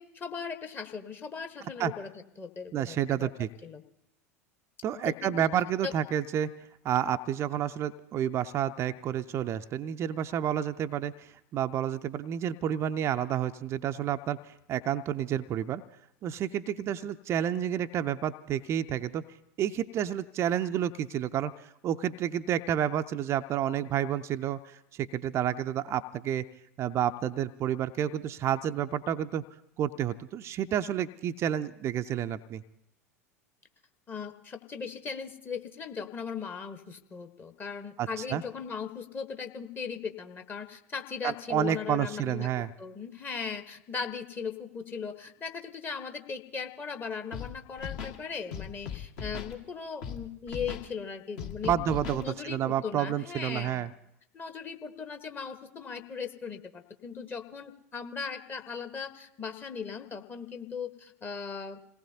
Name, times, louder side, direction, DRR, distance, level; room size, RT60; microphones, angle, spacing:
voice 1, 0.0-2.1 2.4-3.3 3.6-3.8 5.0-5.5 5.8-5.9 16.8-16.9 34.1-51.7 52.1-53.9 54.3-61.8, left 6 dB, 25° left, 7 dB, 1.2 m, -38 dB
voice 2, 2.7-3.5 4.8-6.5 6.8-15.8 16.2-19.2 19.6-26.4 26.8-29.4 29.8-32.6 38.0-38.4 41.2-42.7 51.6-53.9, right 10 dB, 35° right, 9 dB, 0.5 m, -30 dB
Scratching (performance technique), 47.3-47.5 47.8-48.2 48.5-49.5 50.0-50.2 50.5-50.9 51.4-52.2, left 8 dB, 50° left, 1.6 m, -38 dB
28.0 x 18.0 x 2.7 m, 0.82 s
figure-of-eight pair, 80°, 8 cm